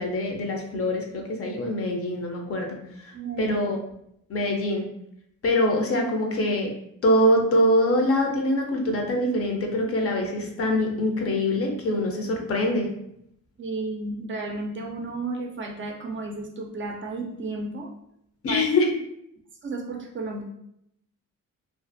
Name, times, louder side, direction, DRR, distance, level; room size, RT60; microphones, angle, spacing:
voice 1, 0.0-3.1 3.4-3.8 4.3-4.9 5.4-6.7 7.0-12.9 18.4-18.9, left 1 dB, 45° left, 2 dB, 0.5 m, -24 dB
voice 2, 3.1-3.6 13.6-17.9 18.5-18.6 19.6-20.4, right 3 dB, 40° right, 2 dB, 0.4 m, -33 dB
2.5 x 2.4 x 2.5 m, 0.75 s
cardioid pair, 140°, 32 cm